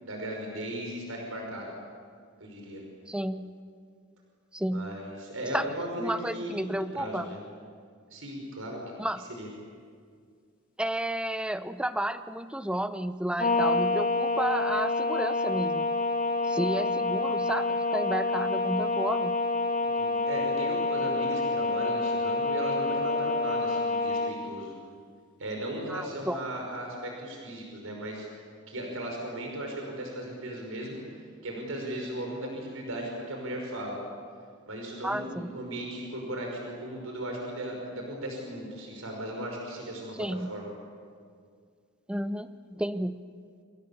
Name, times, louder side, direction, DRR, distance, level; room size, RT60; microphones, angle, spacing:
voice 1, 0.0-1.7 2.4-2.8 4.7-6.5 6.9-7.4 8.1-8.8 9.4-9.5 20.0-24.7 25.4-28.3 28.7-34.0 34.7-40.2 40.5-40.7, right 1 dB, 80° right, 1 dB, 5.5 m, -37 dB
voice 2, 3.1-3.5 4.5-5.0 5.5-5.7 6.0-7.4 9.0-9.3 10.8-15.9 16.4-19.4 25.9-26.4 35.0-35.6 40.2-40.5 42.1-43.2, right 1 dB, 5° right, 11 dB, 0.7 m, -32 dB
sound 1, 13.4-24.3, left 3 dB, 40° left, 2.4 m, -27 dB
29.5 x 28.0 x 7.2 m, 2.1 s
head